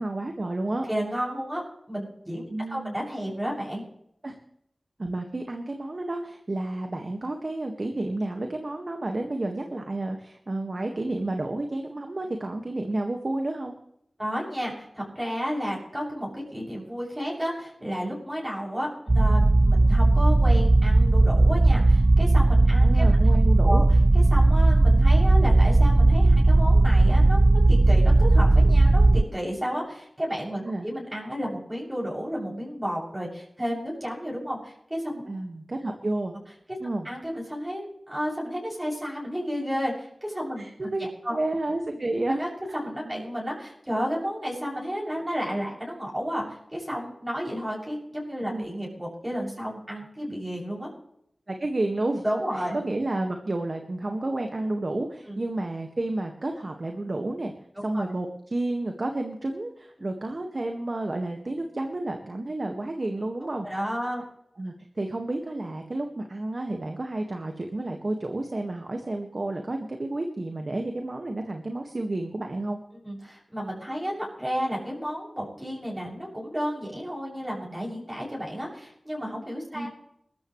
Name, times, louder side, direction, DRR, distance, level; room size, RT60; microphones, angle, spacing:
voice 1, 0.0-0.9 2.5-3.0 4.2-4.4 5.0-13.7 22.8-23.8 30.6-30.8 35.2-36.3 36.8-37.1 40.6-41.1 41.3-42.4 43.0-43.2 48.5-48.6 51.5-52.2 52.6-57.5 57.8-63.7 64.6-72.8 79.7-79.9, right 2 dB, 55° right, 4 dB, 1.8 m, -31 dB
voice 2, 0.9-1.6 1.9-3.8 14.2-23.8 24.1-35.2 36.7-36.8 37.0-40.7 41.2-41.4 41.9-42.0 42.4-50.9 52.2-52.8 55.3-55.4 57.9-58.0 63.6-64.2 73.0-79.9, equal, 15° right, -4 dB, 7.3 m, -32 dB
sound 1, 19.1-29.2, right 2 dB, 35° right, 0.5 m, -17 dB
22.0 x 13.5 x 3.2 m, 0.73 s
wide cardioid pair, 50°, 0 cm